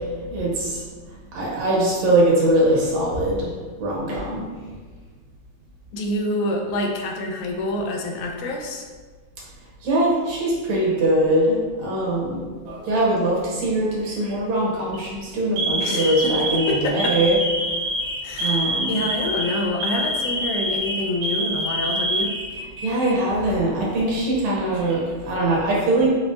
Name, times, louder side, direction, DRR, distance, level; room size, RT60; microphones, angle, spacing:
voice 1, 0.3-0.8 1.3-3.5 3.8-4.4 9.8-12.4 12.9-17.4 18.4-18.9 22.8-26.1, right 1 dB, 70° right, -4 dB, 2.1 m, -21 dB
voice 2, 5.9-8.8 15.8-17.2 18.2-22.3, left 1 dB, 80° left, 2 dB, 2.0 m, -27 dB
Alarm, 12.7-13.2 14.0-14.3 14.8-15.0 15.6-23.1 23.4-23.5 24.4-25.1, right 1 dB, 85° right, 2.4 m, -26 dB
6.8 x 2.9 x 2.6 m, 1.4 s
omnidirectional pair, 3.5 m